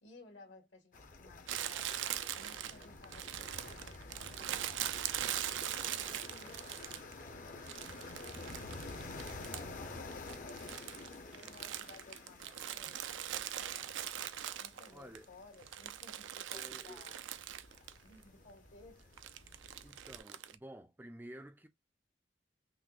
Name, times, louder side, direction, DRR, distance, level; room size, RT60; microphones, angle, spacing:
voice 1, 0.0-2.0 2.3-5.7 6.0-6.8 7.1-9.0 9.2-13.9 14.6-17.2 17.7-19.5, left 2 dB, 80° left, 1.7 m, -58 dB
sound 1, 0.9-20.2, left 3 dB, 45° left, 0.6 m, -50 dB
Crumpling crinkling, 1.5-7.2 7.7-9.8 10.1-15.2 15.5-18.0 18.2-18.3 19.2-20.6, right 11 dB, 85° right, 0.4 m, -41 dB
voice 2, 14.9-15.3 16.5-17.0 19.8-21.7, right 1 dB, 10° right, 0.3 m, -51 dB
5.8 x 2.0 x 2.3 m
head